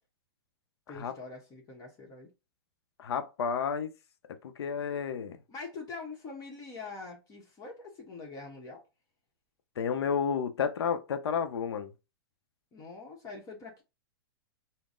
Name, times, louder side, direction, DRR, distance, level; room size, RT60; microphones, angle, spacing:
voice 1, 0.9-2.3 5.5-8.8 12.7-13.8, left 4 dB, 25° left, 1.0 m, -44 dB
voice 2, 3.0-3.9 4.4-5.4 9.8-11.9, left 6 dB, 80° left, 0.6 m, -31 dB
3.8 x 2.0 x 3.7 m
hypercardioid pair, 130°, 13 cm